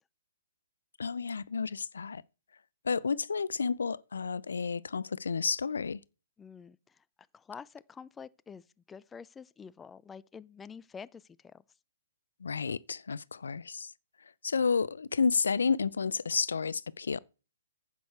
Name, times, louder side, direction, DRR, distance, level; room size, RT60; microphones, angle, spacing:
voice 1, 1.0-2.2 2.8-6.0 12.4-13.9 14.4-17.2, left 5 dB, 80° left, 0.5 m, -31 dB
voice 2, 6.4-7.0 7.3-11.6, left 6 dB, 10° left, 0.5 m, -48 dB
10.5 x 8.3 x 4.6 m
hypercardioid pair, 135°, 0 cm